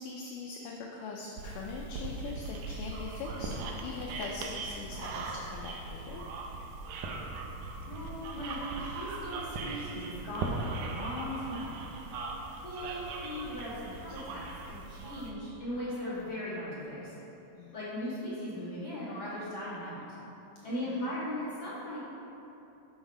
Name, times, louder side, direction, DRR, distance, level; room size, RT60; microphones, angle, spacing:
voice 1, 0.0-6.2 17.5-17.8 20.6-21.0, left 4 dB, 80° left, -1 dB, 2.0 m, -42 dB
sound 1, 1.4-15.3, right 3 dB, 75° right, 1.8 m, -39 dB
voice 2, 7.9-11.8 12.5-17.1 17.7-20.2 20.6-22.0, left 1 dB, 35° left, -10 dB, 2.0 m, -38 dB
7.2 x 6.2 x 4.8 m, 2.9 s
omnidirectional pair, 4.2 m